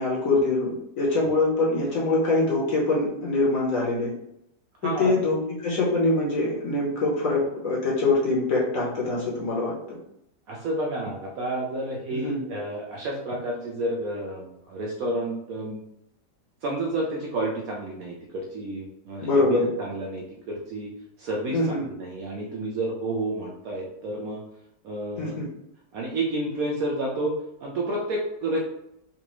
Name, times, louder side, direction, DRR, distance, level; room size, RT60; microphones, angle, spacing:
voice 1, 0.0-4.1 5.0-9.7 12.1-12.4 19.2-19.7 21.5-21.8 25.2-25.4, left 2 dB, 60° left, -4 dB, 1.1 m, -24 dB
voice 2, 4.8-5.1 10.5-15.8 16.6-20.9 21.2-24.4 24.8-25.4 25.9-27.3 27.6-28.6, right 1 dB, 70° right, -2 dB, 0.9 m, -30 dB
4.0 x 2.4 x 2.9 m, 0.80 s
omnidirectional pair, 1.9 m